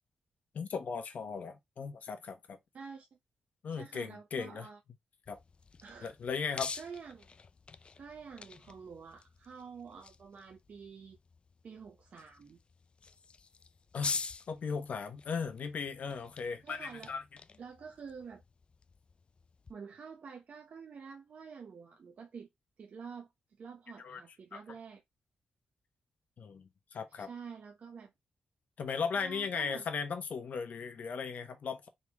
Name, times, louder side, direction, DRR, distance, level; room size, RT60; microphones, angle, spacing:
voice 1, 0.5-2.6 3.6-4.7 5.3-5.4 6.0-6.7 13.9-14.2 14.5-17.2 24.0-24.2 24.5-24.6 26.4-27.3 28.8-31.9, left 5 dB, 65° left, 1.0 m, -37 dB
voice 2, 2.7-3.1 3.7-4.8 5.8-6.1 6.7-7.3 8.0-11.2 11.6-12.6 16.6-17.1 17.6-18.4 19.7-22.5 22.8-23.3 23.6-25.0 27.2-28.1 29.2-29.8, right 6 dB, 55° right, 0.7 m, -48 dB
sound 1, 5.3-19.7, left 4 dB, 35° left, 0.3 m, -46 dB
3.9 x 3.2 x 3.4 m
cardioid pair, 105°, 3 cm